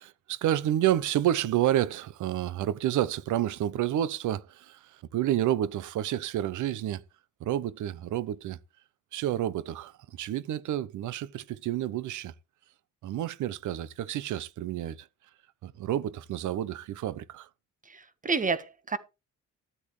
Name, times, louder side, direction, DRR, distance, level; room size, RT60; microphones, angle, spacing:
voice 1, 0.0-7.0 7.4-8.6 9.1-12.3 13.0-15.1 15.6-17.5, right 12 dB, 75° right, 0.9 m, -29 dB
voice 2, 17.8-19.0, right 4 dB, 25° right, 1.4 m, -30 dB
12.5 x 8.4 x 3.3 m
cardioid pair, 90°, 30 cm